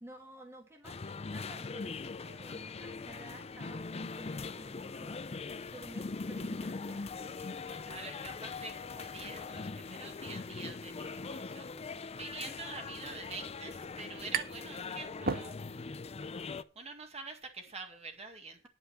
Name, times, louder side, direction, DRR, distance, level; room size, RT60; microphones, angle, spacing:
voice 1, 0.0-5.2 5.7-8.1, right 1 dB, 15° right, 1 dB, 1.6 m, -53 dB
sound 1, 0.8-16.6, left 4 dB, 30° left, 0.5 m, -41 dB
voice 2, 7.7-11.7 12.1-15.6 16.4-16.5 16.8-18.7, right 3 dB, 35° right, 4 dB, 1.9 m, -46 dB
sound 2, 14.3-14.7 15.1-16.0, right 6 dB, 50° right, 0.8 m, -36 dB
10.0 x 5.7 x 6.8 m, 0.36 s
head